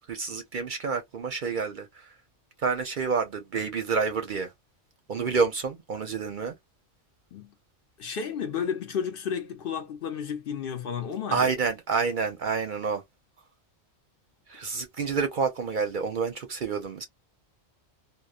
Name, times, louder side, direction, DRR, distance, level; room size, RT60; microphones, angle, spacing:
voice 1, 0.1-1.9 2.6-4.5 5.1-6.5 11.3-13.0 14.5-17.1, right 5 dB, 55° right, 0.6 m, -28 dB
voice 2, 8.0-11.5, left 7 dB, 60° left, 0.7 m, -32 dB
2.9 x 2.0 x 2.2 m
omnidirectional pair, 1.2 m